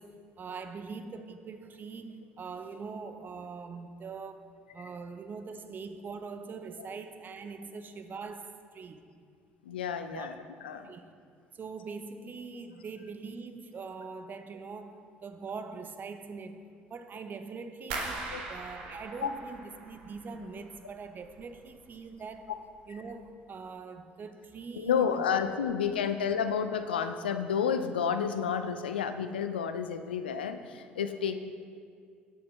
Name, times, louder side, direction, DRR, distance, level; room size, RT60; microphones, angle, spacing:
voice 1, 0.0-9.1 10.1-10.3 10.8-11.0 11.5-22.5 22.9-25.4, right 4 dB, 35° right, 9 dB, 0.8 m, -43 dB
voice 2, 9.6-10.9 18.3-18.4 19.2-19.3 22.9-23.0 24.7-31.4, left 7 dB, 80° left, 8 dB, 0.5 m, -31 dB
sound 1, 17.9-20.8 21.1-21.8 22.1-22.5 23.0-23.1, right 3 dB, 70° right, 1.2 m, -40 dB
19.0 x 6.9 x 3.3 m, 2.2 s
figure-of-eight pair, 55°, 5 cm